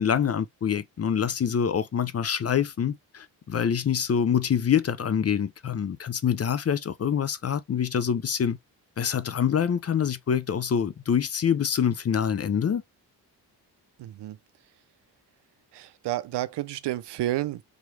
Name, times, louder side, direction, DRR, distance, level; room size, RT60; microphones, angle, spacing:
voice 1, 0.0-8.6 9.0-12.8, left 8 dB, 35° left, 0.5 m, -25 dB
voice 2, 14.0-14.4 15.7-17.6, right 14 dB, 65° right, 0.6 m, -30 dB
3.9 x 3.1 x 3.2 m
supercardioid pair, 55°, 45 cm